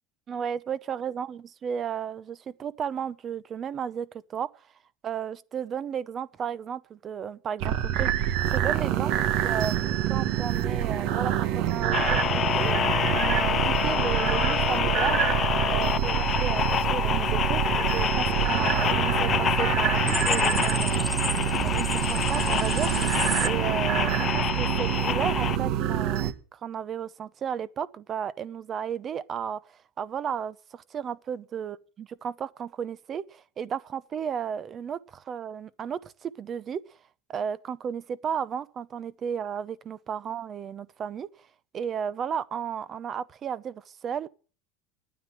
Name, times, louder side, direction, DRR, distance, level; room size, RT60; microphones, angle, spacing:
voice 1, 0.3-4.5 5.0-15.2 15.7-16.6 16.9-21.1 21.6-23.0 23.4-36.8 37.3-41.3 41.7-44.3, right 8 dB, 35° right, 0.8 m, -34 dB
sound 1, 7.6-26.3, right 11 dB, 60° right, 1.4 m, -26 dB
sound 2, 11.9-25.6, left 9 dB, 35° left, 0.7 m, -27 dB
sound 3, 20.1-23.5, equal, ahead, 0.7 m, -33 dB
10.0 x 9.5 x 9.1 m
supercardioid pair, 110°, 0 cm